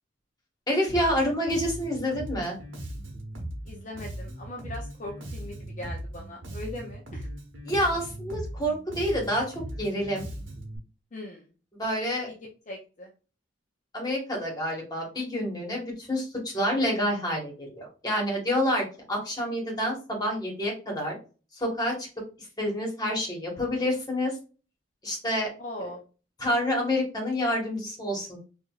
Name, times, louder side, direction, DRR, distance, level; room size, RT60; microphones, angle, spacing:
voice 1, 0.7-2.5 7.6-10.2 11.8-12.3 13.9-21.2 21.5-22.1 22.6-24.4 25.0-25.5 26.4-28.4, equal, 20° left, -1 dB, 1.3 m, -28 dB
Bass guitar, 0.9-10.8, right 1 dB, 75° right, 1.0 m, -38 dB
voice 2, 3.6-7.3 11.1-11.5 12.7-13.1 25.6-26.0, left 1 dB, 40° left, -1 dB, 0.5 m, -40 dB
4.6 x 2.5 x 2.3 m, 0.35 s
head